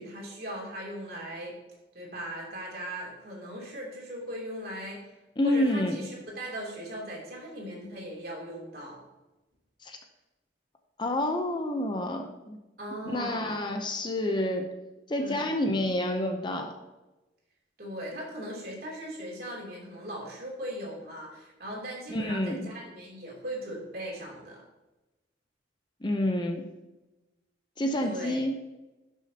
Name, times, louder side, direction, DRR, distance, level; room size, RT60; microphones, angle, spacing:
voice 1, 0.0-1.5 1.9-5.0 5.4-9.0 12.8-13.7 15.2-15.5 17.8-24.6 28.0-28.4, right 1 dB, 55° right, -3 dB, 2.9 m, -39 dB
voice 2, 5.4-6.0 9.8-10.0 11.0-12.6 13.1-14.7 15.1-16.7 22.1-22.7 26.0-26.8 27.8-28.6, left 1 dB, 25° left, 4 dB, 0.7 m, -28 dB
12.0 x 6.3 x 2.8 m, 1.0 s
head